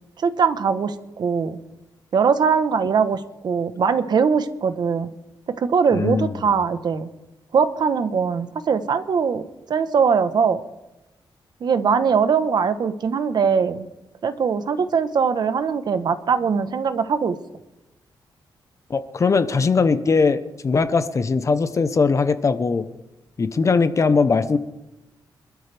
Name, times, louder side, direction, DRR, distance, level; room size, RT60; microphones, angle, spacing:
voice 1, 0.2-1.6 2.1-5.1 5.5-7.1 7.5-10.6 11.6-13.9 14.2-17.4, right 6 dB, 55° right, 10 dB, 1.1 m, -21 dB
voice 2, 5.9-6.4 18.9-22.9 23.4-24.6, left 4 dB, 35° left, 11 dB, 1.0 m, -20 dB
26.0 x 13.0 x 3.5 m, 0.98 s
wide cardioid pair, 120°, 8 cm